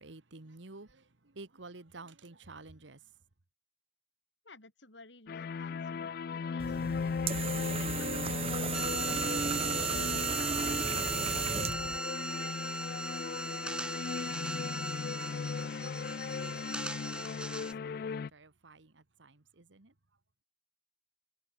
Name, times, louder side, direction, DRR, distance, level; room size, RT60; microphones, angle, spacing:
voice 1, 0.0-3.1 13.4-19.9, right 3 dB, 80° right, 1.5 m, -53 dB
voice 2, 4.4-9.5 10.0-11.6, left 3 dB, 70° left, 5.7 m, -55 dB
sound 1, 5.3-18.3, left 5 dB, 50° left, 0.3 m, -37 dB
sound 2, 6.6-12.0, right 6 dB, 30° right, 0.5 m, -34 dB
sound 3, 8.7-17.7, right 1 dB, 5° right, 0.9 m, -38 dB
head